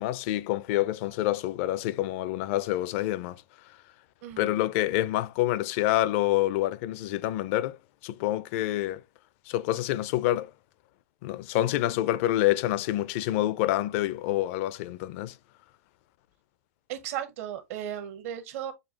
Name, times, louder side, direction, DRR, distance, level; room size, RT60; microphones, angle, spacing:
voice 1, 0.0-3.4 4.4-7.8 8.0-9.0 9.5-10.5 11.2-15.4, left 15 dB, 55° left, 0.4 m, -27 dB
voice 2, 4.2-4.6 16.9-18.7, right 10 dB, 60° right, 1.1 m, -35 dB
6.6 x 2.4 x 2.9 m
hypercardioid pair, 125°, 8 cm